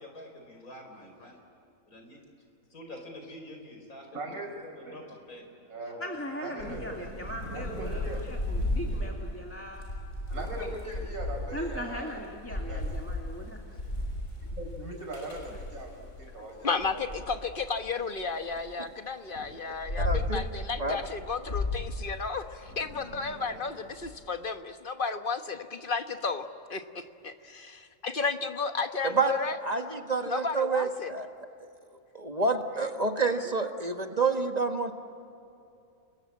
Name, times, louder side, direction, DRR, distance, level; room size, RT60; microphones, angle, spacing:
voice 1, 0.0-1.4 1.9-2.2 2.7-4.1 4.4-5.7, left 1 dB, 85° left, 3 dB, 5.2 m, -46 dB
voice 2, 4.1-4.5 4.9-5.0 5.7-6.0 6.4-7.1 7.5-8.2 8.9-9.0 10.3-12.2 12.5-12.8 14.5-17.0, right 2 dB, 80° right, 1 dB, 5.5 m, -40 dB
voice 3, 6.0-8.2 8.5-9.9 10.3-10.7 11.5-13.8, equal, 10° left, 0 dB, 2.2 m, -39 dB
Thunder / Rain, 6.6-16.3 16.8-18.7 19.3-24.1, left 1 dB, 60° left, 6.7 m, -35 dB
voice 4, 16.6-29.6 30.3-31.1, left 4 dB, 40° left, 8 dB, 1.3 m, -33 dB
voice 5, 20.0-20.4 20.8-21.0 29.0-29.3 29.6-31.3 32.1-34.9, right 4 dB, 30° right, 5 dB, 1.6 m, -28 dB
29.5 x 21.5 x 8.7 m, 2.7 s
omnidirectional pair, 1.5 m